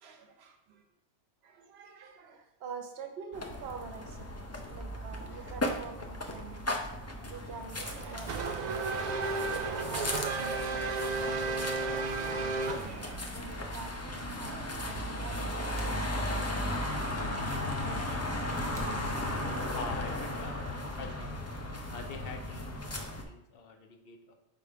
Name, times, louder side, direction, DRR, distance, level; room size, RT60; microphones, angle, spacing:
voice 1, 0.0-0.8 1.4-8.9 9.3-11.9 12.2-17.0 17.6-18.2, right 5 dB, 70° right, 5 dB, 1.0 m, -47 dB
sound 1, 3.3-23.2, left 1 dB, 25° left, 0.4 m, -36 dB
Race car auto racing / Accelerating revving vroom, 7.8-13.3, right 3 dB, 55° right, 0.5 m, -33 dB
sound 2, 15.7-16.7 17.0-17.1 17.8-17.9 18.7-19.9, right 2 dB, 35° right, 1.1 m, -48 dB
voice 2, 19.7-21.5 21.9-24.3, left 5 dB, 60° left, 5 dB, 0.9 m, -45 dB
4.5 x 4.1 x 5.0 m, 0.87 s
omnidirectional pair, 1.1 m